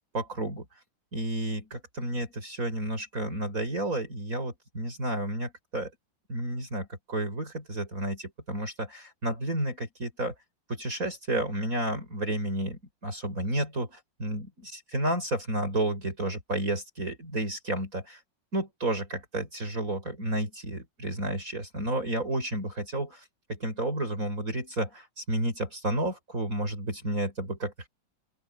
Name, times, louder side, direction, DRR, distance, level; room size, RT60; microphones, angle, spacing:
voice 1, 0.1-0.6 1.1-5.9 6.3-10.3 10.7-18.2 18.5-23.2 23.5-27.9, right 1 dB, 40° right, 6.9 m, -31 dB
open air
omnidirectional pair, 2.2 m